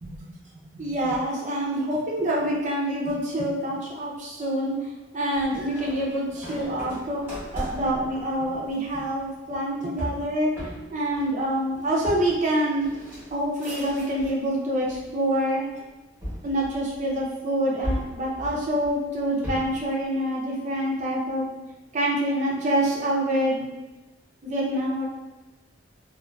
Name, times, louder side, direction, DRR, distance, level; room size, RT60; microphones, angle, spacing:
voice 1, 0.0-0.3 0.7-4.7 5.1-7.2 7.5-10.5 10.9-12.9 13.3-15.6 16.4-21.5 21.9-23.7 24.4-25.1, right 1 dB, 40° right, -4 dB, 0.5 m, -26 dB
sound 1, 5.3-14.5 14.8-15.5 16.2-17.3 17.8-19.9, equal, 10° right, 0.9 m, -37 dB
2.5 x 2.3 x 2.2 m, 1.1 s
head